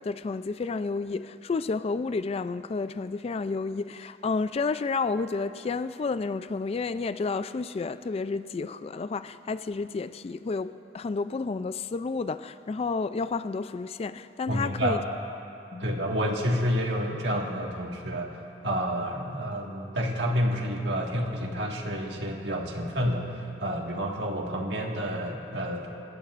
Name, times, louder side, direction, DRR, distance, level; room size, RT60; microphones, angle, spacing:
voice 1, 0.0-15.0 15.7-15.9, left 4 dB, 35° left, 0.3 m, -31 dB
voice 2, 14.5-15.1 15.8-18.4 18.6-25.9, equal, 75° right, 1.8 m, -29 dB
28.5 x 16.0 x 2.5 m
head